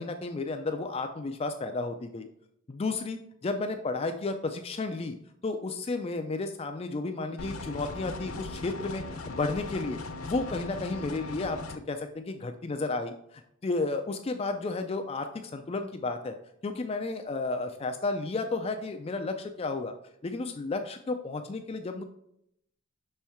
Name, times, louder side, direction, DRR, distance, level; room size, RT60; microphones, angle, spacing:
voice 1, 0.0-2.3 2.7-3.2 3.4-5.1 5.4-11.6 11.9-13.1 13.6-16.3 16.6-19.9 20.2-22.0, left 3 dB, 30° left, 6 dB, 0.3 m, -32 dB
sound 1, 7.4-11.8, left 3 dB, 90° left, 0.7 m, -39 dB
6.2 x 4.3 x 3.5 m, 0.75 s
head